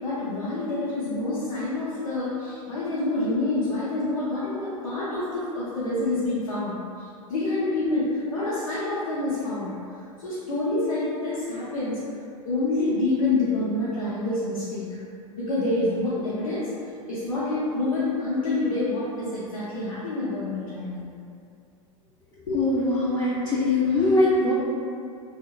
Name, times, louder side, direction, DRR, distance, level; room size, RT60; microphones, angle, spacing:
voice 1, 0.0-6.8 7.3-9.7 10.2-12.0 12.4-15.0 15.3-16.7 17.1-21.1 22.5-22.6, left 2 dB, 90° left, -12 dB, 0.6 m, -27 dB
voice 2, 22.5-24.5, left 2 dB, 20° left, -7 dB, 0.4 m, -22 dB
3.0 x 2.0 x 2.2 m, 2.4 s
hypercardioid pair, 90°, 17 cm